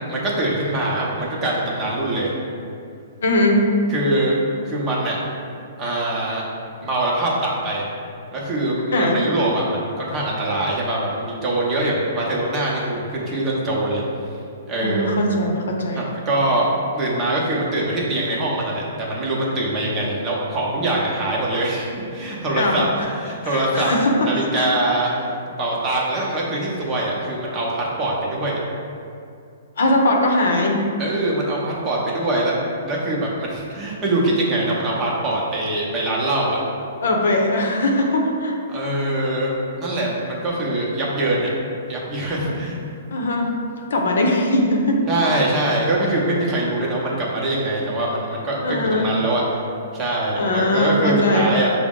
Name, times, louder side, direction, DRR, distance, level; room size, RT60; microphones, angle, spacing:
voice 1, 0.1-2.3 3.9-4.4 4.7-5.2 5.8-6.5 6.8-7.9 8.3-14.0 14.7-15.1 16.0-16.7 16.9-23.9 24.2-25.3 25.6-28.6 31.0-32.6 32.8-36.6 38.7-39.5 39.8-41.5 41.9-42.8 45.1-49.4 49.9-51.7, right 1 dB, 20° right, -5 dB, 0.7 m, -23 dB
voice 2, 3.2-3.6 8.9-9.2 14.8-16.0 22.6-23.1 23.4-24.3 24.6-24.7 29.8-30.8 37.0-38.5 42.4-42.5 43.1-43.5 43.9-45.0 48.6-49.1 50.4-51.5, left 1 dB, 80° left, 1 dB, 0.7 m, -20 dB
5.7 x 2.1 x 3.6 m, 2.4 s
hypercardioid pair, 160°, 0 cm